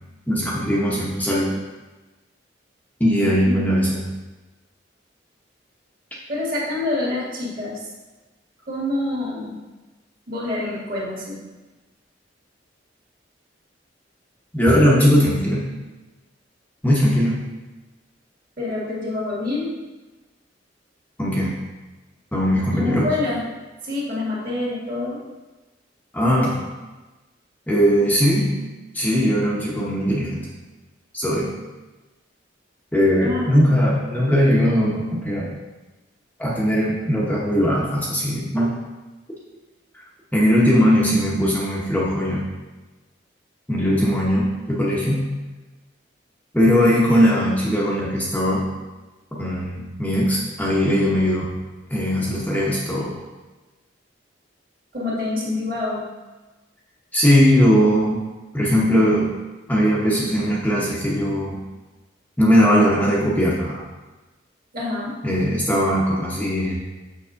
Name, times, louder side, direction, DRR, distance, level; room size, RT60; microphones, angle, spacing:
voice 1, 0.3-1.6 3.0-4.1 14.5-15.7 16.8-17.4 21.2-21.6 22.3-23.1 26.1-26.6 27.7-28.6 28.9-30.5 31.1-31.5 32.9-35.6 36.4-38.7 40.3-42.5 43.7-45.3 46.5-48.7 49.3-51.5 51.9-53.2 57.1-58.2 58.5-59.3 59.7-61.6 62.4-63.8 65.2-66.8, equal, 10° left, -5 dB, 0.8 m, -19 dB
voice 2, 6.3-7.8 8.7-9.5 10.3-11.4 18.6-19.7 22.7-23.4 23.8-25.2 33.2-33.8 54.9-56.0 64.7-65.2, left 2 dB, 50° right, -5 dB, 1.9 m, -26 dB
6.9 x 5.9 x 2.5 m, 1.2 s
head